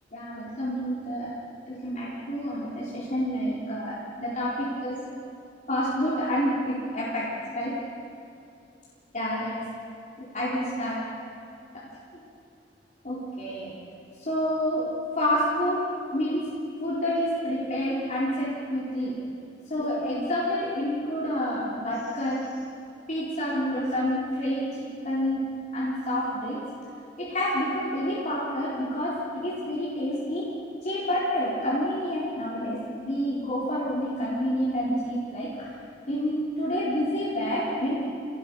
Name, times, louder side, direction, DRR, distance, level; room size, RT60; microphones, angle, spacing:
voice 1, 0.1-1.3 1.7-5.2 5.7-7.8 9.1-9.6 10.3-11.0 13.0-13.7 14.3-15.8 16.1-16.5 16.8-19.2 19.7-22.5 23.1-25.4 25.7-26.6 27.2-30.5 30.8-35.7 36.1-38.0, equal, 45° left, -8 dB, 4.1 m, -28 dB
28.0 x 19.0 x 5.5 m, 2.5 s
head